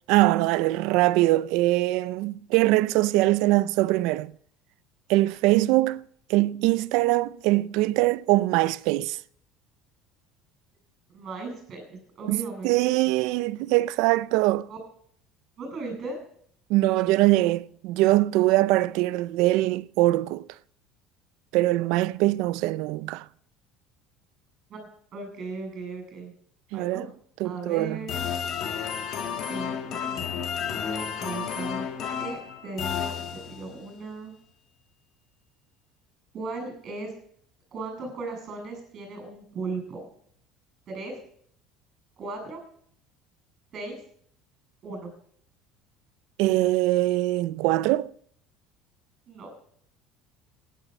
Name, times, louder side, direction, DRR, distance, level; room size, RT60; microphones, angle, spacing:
voice 1, 0.1-4.4 5.1-6.0 6.3-9.2 12.2-14.7 16.7-20.5 21.5-23.3 26.7-27.1 27.4-28.0 46.4-48.1, right 18 dB, 65° right, 0.5 m, -22 dB
voice 2, 11.1-13.1 14.7-14.8 15.6-16.2 24.7-24.8 25.1-26.3 26.7-27.1 27.4-28.2 29.5-31.9 32.2-34.3 36.3-37.1 37.7-40.0 40.9-41.2 42.2-42.6 43.7-44.0 44.8-45.1 49.3-49.5, right 3 dB, 35° right, 7.2 m, -37 dB
sound 1, 28.1-33.8, left 7 dB, 45° left, 1.5 m, -32 dB
16.0 x 11.0 x 5.4 m
cardioid pair, 160°, 0 cm